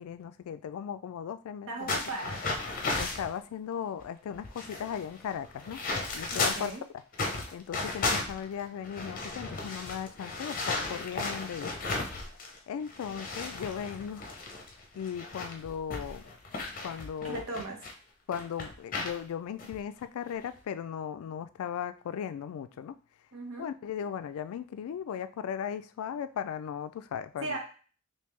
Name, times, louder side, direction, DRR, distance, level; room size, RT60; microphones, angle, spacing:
voice 1, 0.0-1.9 3.0-5.8 6.1-6.7 7.5-11.7 12.7-14.3 15.0-16.3 16.8-17.4 18.3-23.0 23.6-27.6, left 8 dB, 90° left, 15 dB, 0.3 m, -37 dB
voice 2, 1.7-2.4 6.3-6.8 17.2-17.8 23.3-23.7 27.4-27.6, right 2 dB, 70° right, 1 dB, 1.0 m, -37 dB
sound 1, 1.9-3.3 4.0-4.1 4.3-6.8 7.1-12.6 12.9-17.9 18.3-19.2 19.6-19.8 20.3-20.6, left 3 dB, 40° left, 0.6 m, -35 dB
3.4 x 2.8 x 3.1 m, 0.40 s
head